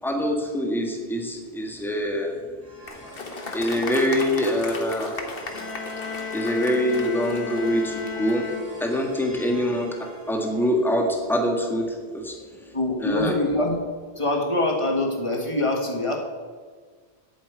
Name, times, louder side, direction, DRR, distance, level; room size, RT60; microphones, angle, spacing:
voice 1, 0.0-2.3 3.5-5.1 6.3-8.5 8.8-9.9 10.3-12.3 13.0-13.3, equal, ahead, 1 dB, 1.5 m, -24 dB
sound 1, 2.6-13.7, equal, 35° right, 2.7 m, -46 dB
Applause, 2.8-8.4, left 3 dB, 60° left, 1.4 m, -37 dB
sound 2, 5.5-9.3, left 7 dB, 80° left, 1.7 m, -34 dB
voice 2, 9.3-9.6 12.7-13.8 14.2-16.2, left 1 dB, 30° left, 1 dB, 1.7 m, -24 dB
8.8 x 7.5 x 8.5 m, 1.5 s
omnidirectional pair, 1.1 m